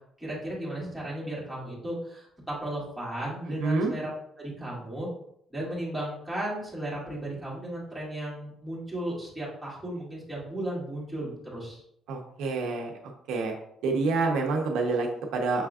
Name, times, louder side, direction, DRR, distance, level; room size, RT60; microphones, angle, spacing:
voice 1, 0.2-4.1 4.4-5.1 5.5-11.8, right 1 dB, ahead, -7 dB, 1.8 m, -35 dB
voice 2, 3.6-3.9 12.1-12.9 13.3-13.5 13.8-15.7, right 3 dB, 85° right, 1 dB, 0.8 m, -27 dB
6.3 x 3.5 x 2.4 m, 0.70 s
cardioid pair, 155°, 0 cm